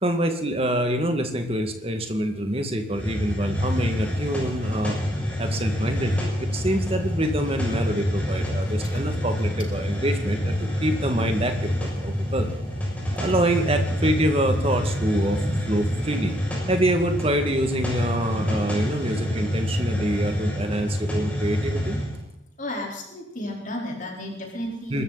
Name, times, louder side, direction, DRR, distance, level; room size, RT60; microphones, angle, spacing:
voice 1, 0.0-4.9 5.4-12.5 13.1-15.4 15.7-16.4 16.7-22.0 24.9-25.0, right 1 dB, 30° right, 6 dB, 2.1 m, -26 dB
Hiss, 2.9-22.2, equal, 5° left, 7.0 m, -27 dB
voice 2, 22.6-25.0, left 1 dB, 40° left, 0 dB, 4.2 m, -33 dB
24.5 x 13.5 x 4.2 m, 0.86 s
head